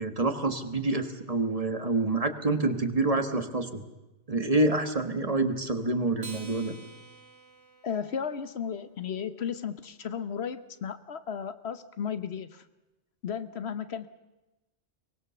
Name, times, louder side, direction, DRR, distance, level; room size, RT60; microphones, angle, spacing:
voice 1, 0.0-3.8 4.3-6.8, right 2 dB, 35° right, 8 dB, 1.5 m, -27 dB
Acoustic guitar, 6.2-8.9, right 3 dB, 75° right, 2.2 m, -48 dB
voice 2, 7.8-12.6 13.2-14.1, left 7 dB, 75° left, 12 dB, 1.3 m, -34 dB
23.5 x 19.5 x 7.0 m, 1.0 s
omnidirectional pair, 1.1 m